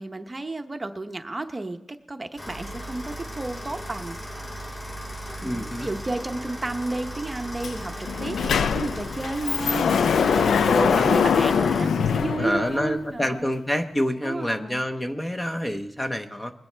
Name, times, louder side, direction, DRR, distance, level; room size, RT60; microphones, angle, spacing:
voice 1, 0.0-4.2 5.4-13.6 14.2-14.8, right 2 dB, 20° right, 6 dB, 0.8 m, -32 dB
sound 1, 2.4-11.8, equal, 35° left, 5.8 m, -37 dB
voice 2, 5.4-5.9 10.7-11.1 12.4-16.5, equal, 15° left, 7 dB, 0.8 m, -27 dB
Sliding door, 7.6-7.7 8.1-13.1, left 6 dB, 75° left, 0.4 m, -23 dB
21.0 x 10.5 x 3.3 m, 0.82 s
cardioid pair, 100°, 0 cm